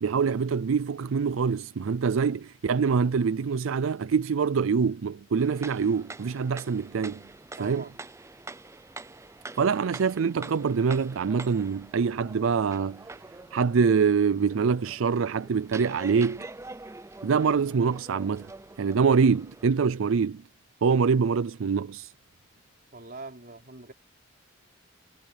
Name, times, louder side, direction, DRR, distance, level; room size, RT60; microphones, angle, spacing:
voice 1, 0.0-7.2 7.6-7.8 9.5-13.1 13.5-16.4 17.2-18.5 18.8-20.4 20.8-22.1, right 5 dB, 80° right, 0.4 m, -25 dB
sound 1, 5.4-19.7, right 3 dB, 15° right, 0.5 m, -45 dB
voice 2, 7.6-8.0 22.9-23.9, right 3 dB, 50° right, 3.9 m, -42 dB
head